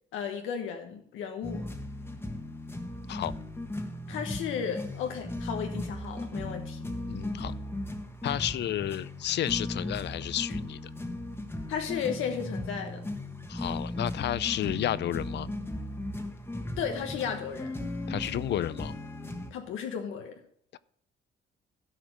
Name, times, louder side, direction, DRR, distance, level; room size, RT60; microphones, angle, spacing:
voice 1, 0.1-1.6 4.1-6.8 11.7-13.0 16.8-17.7 19.5-20.3, left 7 dB, 85° left, 4 dB, 1.1 m, -34 dB
sound 1, 1.4-19.5, left 1 dB, 10° left, 1.4 m, -37 dB
voice 2, 7.1-7.5 8.2-10.8 13.5-15.5 18.1-18.9 20.7-20.8, left 12 dB, 60° left, 19 dB, 0.5 m, -31 dB
13.0 x 5.0 x 6.4 m, 0.65 s
cardioid pair, 90°, 20 cm